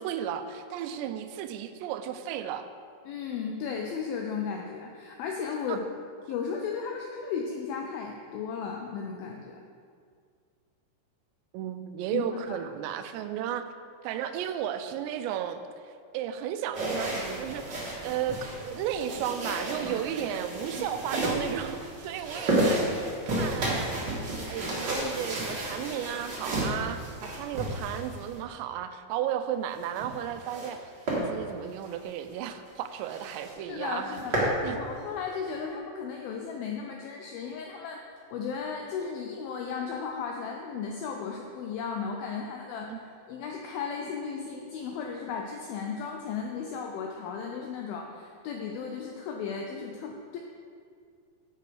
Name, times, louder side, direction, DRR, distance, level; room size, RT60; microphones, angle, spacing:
voice 1, 0.0-2.7 5.7-5.8 11.5-13.7 14.0-15.6 16.1-17.6 18.0-23.9 24.5-30.8 31.1-34.8 42.9-43.0, right 10 dB, 85° right, 9 dB, 2.8 m, -34 dB
voice 2, 3.1-5.9 6.3-9.6 12.1-12.6 33.7-34.3 34.6-38.0 38.3-50.4, left 6 dB, 85° left, 2 dB, 2.1 m, -35 dB
sound 1, 16.7-28.4 29.7-30.7 31.1-31.2 31.7-31.9 32.3-32.4 32.7-32.8 33.1-33.5 33.9-34.6, right 1 dB, 50° right, 1.3 m, -32 dB
10.5 x 7.1 x 4.7 m, 2.2 s
omnidirectional pair, 5.0 m